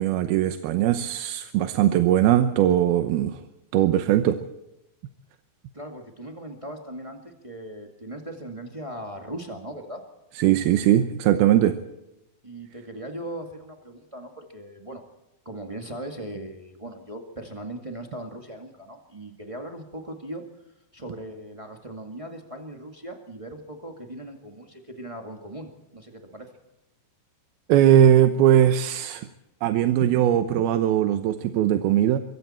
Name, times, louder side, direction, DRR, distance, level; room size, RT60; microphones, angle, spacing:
voice 1, 0.0-3.4 3.7-4.4 10.4-11.8 27.7-29.3 29.6-32.2, right 11 dB, 75° right, 9 dB, 2.6 m, -20 dB
voice 2, 5.7-10.0 12.4-15.0 15.4-20.4 20.9-26.5, right 1 dB, 45° right, 3 dB, 0.4 m, -39 dB
24.5 x 24.5 x 4.4 m, 0.92 s
omnidirectional pair, 4.8 m